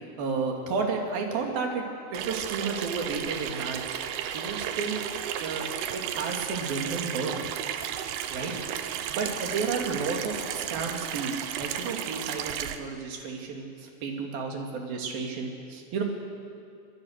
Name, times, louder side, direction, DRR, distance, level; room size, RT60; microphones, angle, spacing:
voice 1, 0.2-1.8 2.1-4.0 4.3-5.0 5.4-5.7 5.9-7.4 8.3-8.6 9.1-16.0, right 4 dB, 50° right, 1 dB, 4.1 m, -32 dB
Water tap faucet / Sink (filling or washing), 2.1-12.8, right 10 dB, 75° right, 2.4 m, -34 dB
26.0 x 21.5 x 6.7 m, 2.3 s
omnidirectional pair, 5.9 m